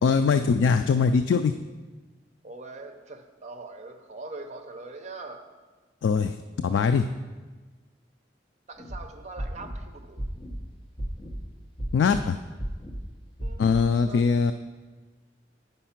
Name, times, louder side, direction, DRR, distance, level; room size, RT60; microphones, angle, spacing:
voice 1, 0.0-1.5 6.0-6.4 6.6-7.1 11.9-12.4 13.6-14.5, left 5 dB, 80° left, 9 dB, 0.3 m, -21 dB
voice 2, 2.4-5.4 8.7-10.2 13.4-14.2, right 3 dB, 40° right, 5 dB, 0.6 m, -42 dB
sound 1, 8.8-9.0 9.4-9.8 10.2-10.6 11.0-11.4 11.8-12.2 12.6-13.0 13.4-13.8, equal, 25° left, 0.9 m, -34 dB
8.9 x 5.4 x 5.8 m, 1.3 s
head